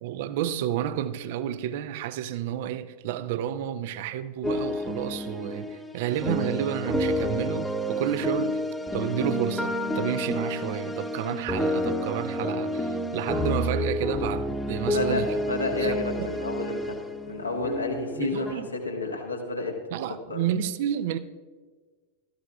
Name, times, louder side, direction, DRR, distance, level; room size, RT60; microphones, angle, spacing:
voice 1, 0.0-15.4 15.8-16.3 18.2-18.7 19.9-21.2, right 10 dB, 50° right, 0.5 m, -31 dB
sound 1, 4.4-18.5, left 1 dB, 5° left, 1.0 m, -29 dB
voice 2, 14.9-17.0 17.2-19.8 20.3-20.4, left 3 dB, 80° left, 1.6 m, -30 dB
16.5 x 13.5 x 2.3 m
figure-of-eight pair, 90°, 0 cm